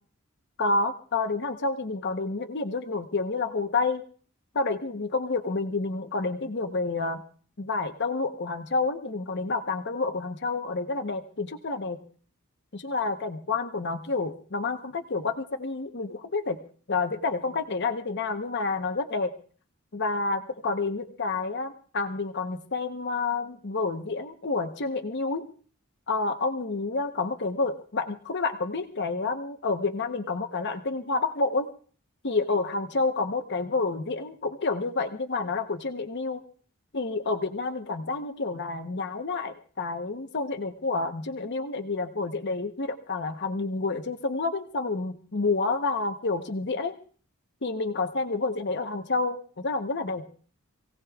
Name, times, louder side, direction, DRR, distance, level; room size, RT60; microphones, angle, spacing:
voice 1, 0.6-4.0 4.5-7.2 7.6-12.0 12.7-16.6 16.9-19.3 19.9-25.5 26.1-31.7 32.2-36.4 36.9-47.0 47.6-50.3, left 3 dB, 50° left, 6 dB, 0.9 m, -29 dB
27.0 x 17.0 x 2.4 m, 0.43 s
head